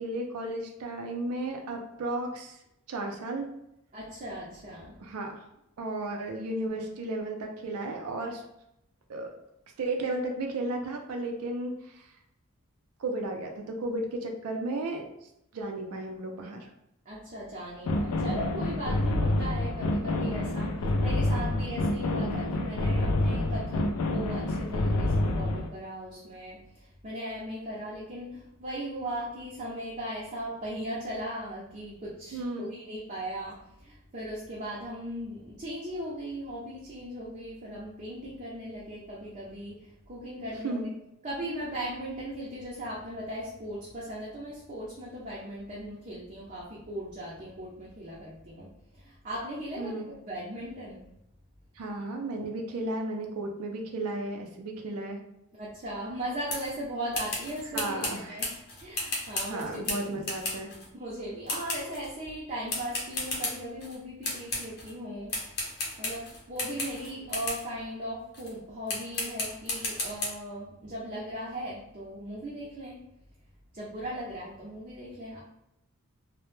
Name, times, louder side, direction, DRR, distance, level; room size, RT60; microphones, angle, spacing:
voice 1, 0.0-2.6 2.9-3.5 5.0-5.4 5.8-8.4 9.1-9.4 9.8-12.1 13.0-15.1 15.5-16.7 32.3-32.7 40.6-40.9 49.8-50.0 51.8-55.2 57.7-58.4 59.5-60.7, right 2 dB, 90° right, 3 dB, 0.4 m, -34 dB
voice 2, 3.9-4.9 17.1-40.8 41.2-48.7 48.9-51.1 55.6-58.5 58.8-60.0 60.9-65.4 65.7-73.0 73.7-75.4, equal, 35° right, -6 dB, 0.5 m, -38 dB
sound 1, 17.9-25.7, left 1 dB, 85° left, 0.4 m, -28 dB
sound 2, 56.5-56.7 57.1-60.9 61.5-62.1 62.7-64.0 64.2-64.9 65.3-67.7 68.3-68.5 68.9-70.3, left 2 dB, 50° left, 0.6 m, -34 dB
2.1 x 2.0 x 3.0 m, 0.81 s
head